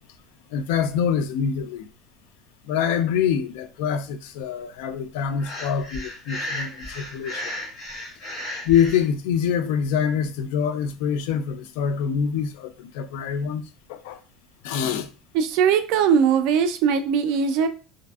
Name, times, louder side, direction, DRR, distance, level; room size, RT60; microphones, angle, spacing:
voice 1, 0.5-1.9 2.6-7.5 8.6-13.6 13.9-14.2 14.6-15.1, left 7 dB, 85° left, 0.3 m, -25 dB
Breathing, 5.4-9.0, left 1 dB, 35° left, 0.9 m, -34 dB
voice 2, 15.3-17.7, right 7 dB, 55° right, 0.3 m, -20 dB
2.6 x 2.4 x 2.3 m
cardioid pair, 175°, 0 cm